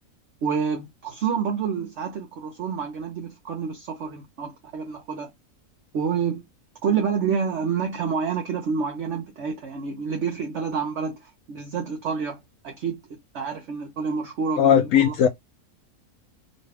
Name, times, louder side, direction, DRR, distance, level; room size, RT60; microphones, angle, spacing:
voice 1, 0.4-5.3 5.9-6.4 6.8-12.4 12.6-13.0 13.3-15.2, right 6 dB, 55° right, 1.1 m, -28 dB
voice 2, 14.6-15.3, left 9 dB, 70° left, 0.9 m, -18 dB
4.1 x 2.3 x 3.2 m
omnidirectional pair, 1.5 m